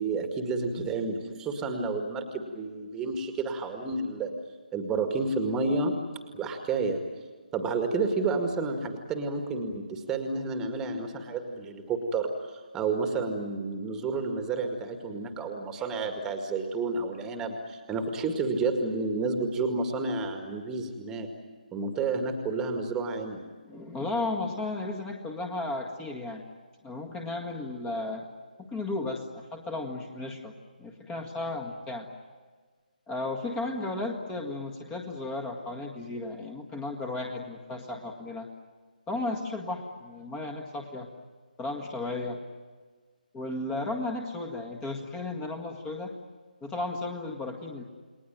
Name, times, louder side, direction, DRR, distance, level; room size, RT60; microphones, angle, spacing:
voice 1, 0.0-4.4 4.7-6.0 6.3-7.0 7.5-21.3 21.7-23.4, right 3 dB, 10° right, 5 dB, 1.9 m, -30 dB
voice 2, 23.7-26.4 26.8-28.3 28.7-30.5 30.8-32.1 33.1-38.5 39.1-41.1 41.6-42.4 43.3-46.1 46.6-47.8, left 2 dB, 10° left, 2 dB, 1.8 m, -34 dB
29.5 x 20.5 x 9.2 m, 1.5 s
figure-of-eight pair, 145°, 5 cm